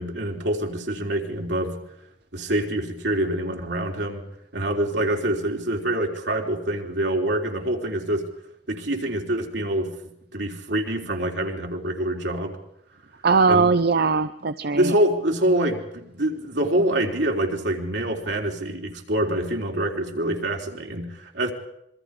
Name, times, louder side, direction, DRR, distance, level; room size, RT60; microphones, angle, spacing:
voice 1, 0.0-1.8 2.3-4.2 4.5-8.3 8.7-9.9 10.3-12.6 13.5-13.7 14.7-21.5, right 1 dB, 85° right, 1 dB, 3.7 m, -25 dB
voice 2, 13.2-14.9, right 4 dB, 60° right, 11 dB, 0.7 m, -20 dB
26.5 x 23.0 x 5.0 m, 0.80 s
head